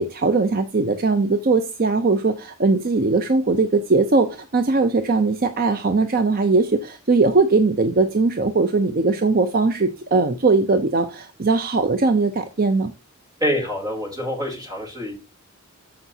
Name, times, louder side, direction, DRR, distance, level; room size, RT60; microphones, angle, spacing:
voice 1, 0.0-12.9, right 3 dB, 40° right, 0.6 m, -20 dB
voice 2, 13.4-15.1, equal, 15° right, 3.2 m, -26 dB
13.5 x 5.0 x 2.8 m
head